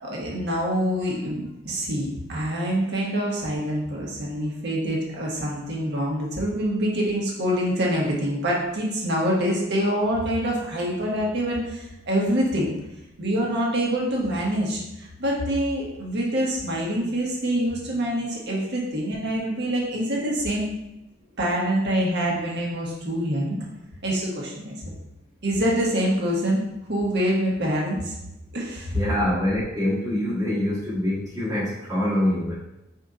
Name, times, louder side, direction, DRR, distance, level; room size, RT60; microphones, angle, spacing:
voice 1, 0.0-12.7 13.2-20.7 21.4-23.6 24.0-24.9 25.4-26.6 26.9-28.1 28.5-29.0, equal, 60° right, -3 dB, 1.2 m, -25 dB
voice 2, 28.9-32.5, left 1 dB, 15° right, -8 dB, 1.2 m, -25 dB
5.0 x 2.8 x 3.7 m, 0.90 s
head